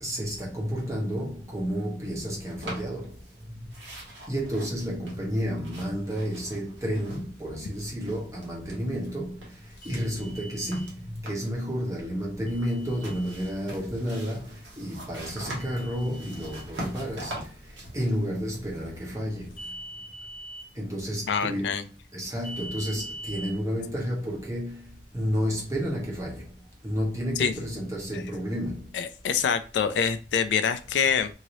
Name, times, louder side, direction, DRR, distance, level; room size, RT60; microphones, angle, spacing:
voice 1, 0.0-3.1 4.3-9.4 9.8-17.4 17.9-19.5 20.8-21.8 22.1-24.8 25.1-26.4 26.8-28.9, equal, 20° right, 1.1 m, -31 dB
sound 1, 2.5-3.4 3.7-7.5 7.7-9.1 9.4-11.6 12.8-19.1, right 1 dB, 80° right, 1.2 m, -43 dB
sound 2, 9.8-10.9 12.5-13.6 15.6-16.7 19.5-20.7 22.4-23.5, right 1 dB, 50° left, 0.9 m, -42 dB
voice 2, 21.3-21.8 27.4-27.5 28.1-28.2 28.9-31.3, left 7 dB, 75° left, 0.3 m, -25 dB
2.8 x 2.8 x 2.9 m
head